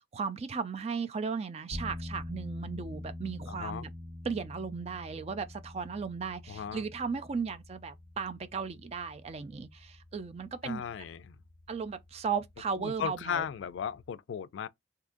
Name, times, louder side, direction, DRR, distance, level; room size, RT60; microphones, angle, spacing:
voice 1, 0.1-3.9 4.2-10.8 11.7-13.5, right 5 dB, 35° right, 0.3 m, -36 dB
sound 1, 1.7-14.0, left 1 dB, 65° right, 1.9 m, -46 dB
voice 2, 3.5-3.9 6.5-6.8 10.6-11.4 12.8-14.7, left 8 dB, 80° left, 0.3 m, -36 dB
3.6 x 2.8 x 2.5 m
head